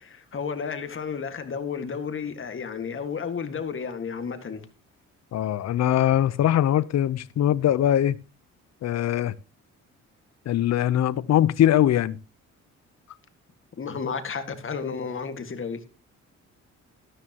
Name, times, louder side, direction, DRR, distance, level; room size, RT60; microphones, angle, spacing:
voice 1, 0.0-4.6 13.8-15.8, left 6 dB, 45° left, 1.9 m, -32 dB
voice 2, 5.3-8.2 8.8-9.3 10.5-12.2, left 11 dB, 60° left, 0.7 m, -22 dB
13.0 x 13.0 x 2.9 m
cardioid pair, 90°, 30 cm